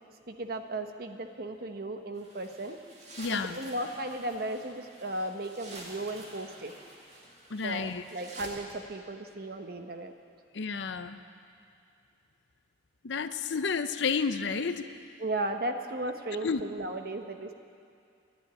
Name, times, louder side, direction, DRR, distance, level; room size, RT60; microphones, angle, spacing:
voice 1, 0.3-2.8 3.3-6.7 7.6-10.1 15.2-17.5, right 1 dB, 55° right, 6 dB, 0.9 m, -35 dB
sound 1, 2.2-8.8, right 1 dB, 40° right, 2.2 m, -49 dB
voice 2, 3.2-3.6 7.5-8.0 10.5-11.2 13.0-14.9 16.4-16.6, left 5 dB, 75° left, 10 dB, 0.6 m, -31 dB
11.5 x 10.5 x 10.0 m, 2.5 s
head